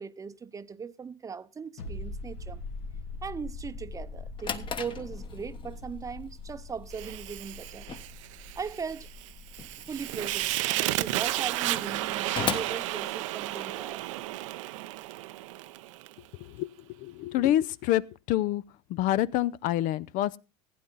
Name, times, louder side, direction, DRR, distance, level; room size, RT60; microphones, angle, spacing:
voice 1, 0.0-2.6 3.2-7.9 8.6-9.1 9.9-14.2, right 6 dB, 20° right, 0.6 m, -39 dB
sound 1, 1.8-13.1 13.4-13.5, left 2 dB, 80° left, 2.4 m, -43 dB
Drawer open or close, 4.1-13.8, left 6 dB, 30° left, 1.2 m, -40 dB
Fire, 6.9-16.1, right 17 dB, 80° right, 0.6 m, -33 dB
voice 2, 16.4-18.0 18.3-18.6 18.9-20.4, left 13 dB, 55° left, 0.5 m, -27 dB
15.5 x 9.4 x 4.0 m
supercardioid pair, 105°, 16 cm